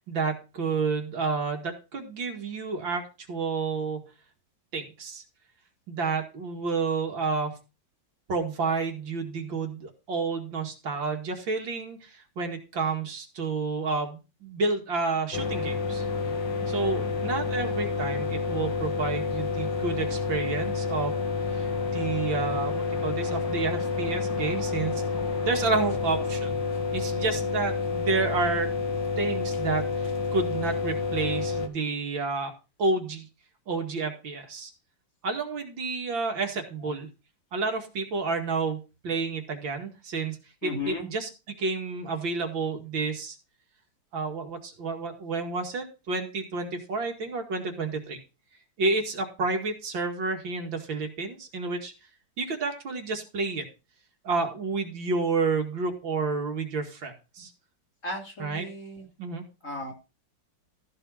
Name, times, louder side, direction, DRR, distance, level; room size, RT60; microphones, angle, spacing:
voice 1, 0.1-4.0 4.7-5.2 5.9-7.6 8.3-16.0 16.7-21.1 21.5-25.0 25.4-26.6 26.9-28.7 29.2-32.5 32.8-33.3 33.7-34.7 35.2-37.1 37.5-43.4 44.1-48.2 48.8-51.9 52.4-53.6 54.2-57.5 58.4-58.7 59.2-59.4, right 4 dB, 80° right, 3 dB, 2.7 m, -30 dB
sound 1, 15.3-31.7, left 4 dB, 70° left, 2.3 m, -29 dB
voice 2, 40.6-41.1 58.0-59.1 59.6-59.9, left 2 dB, 40° left, 0 dB, 3.6 m, -35 dB
14.0 x 5.5 x 5.6 m, 0.30 s
omnidirectional pair, 2.1 m